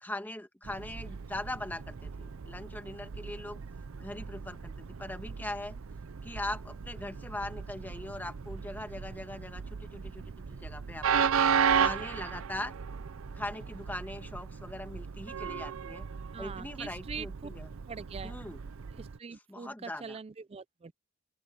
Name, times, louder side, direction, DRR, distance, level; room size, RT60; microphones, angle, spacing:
voice 1, 0.0-3.6 4.0-5.8 6.2-10.2 10.5-11.3 11.7-12.7 13.3-16.1 16.4-17.7 18.2-18.6 19.5-20.2, left 1 dB, 10° left, 1.4 m, -40 dB
Train, 0.6-19.2, right 7 dB, 80° right, 0.5 m, -35 dB
voice 2, 16.3-17.5 17.9-18.3 18.9-20.9, right 5 dB, 30° right, 0.4 m, -43 dB
open air
head